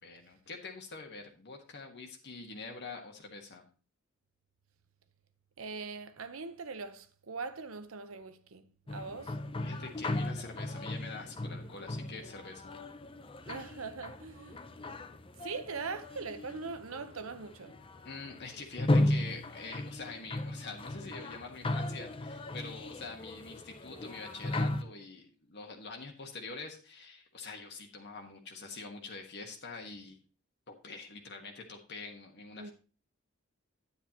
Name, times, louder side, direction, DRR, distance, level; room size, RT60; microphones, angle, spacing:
voice 1, 0.0-3.6 9.6-12.7 18.0-30.2 30.7-32.7, left 3 dB, 55° left, 1.5 m, -45 dB
voice 2, 5.6-9.4 13.5-14.7 15.4-17.8 32.6-32.7, right 4 dB, 90° right, 0.9 m, -41 dB
sound 1, 8.9-24.8, left 1 dB, 25° left, 0.6 m, -36 dB
9.8 x 9.7 x 2.9 m
head